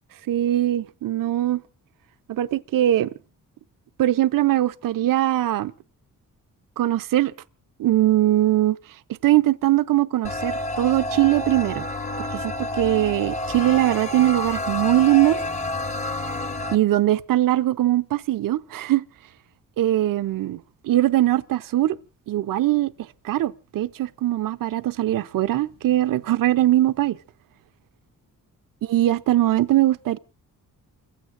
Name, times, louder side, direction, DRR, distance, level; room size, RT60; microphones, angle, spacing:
voice 1, 0.3-1.6 2.3-3.1 4.0-5.7 6.8-7.3 7.8-11.9 12.2-15.4 16.7-19.1 19.8-22.0 22.3-22.9 23.2-27.2 28.8-30.2, right 14 dB, 75° right, 0.7 m, -21 dB
sound 1, 10.2-16.8, left 1 dB, 20° left, 0.8 m, -29 dB
29.5 x 16.0 x 2.5 m
wide cardioid pair, 180°, 33 cm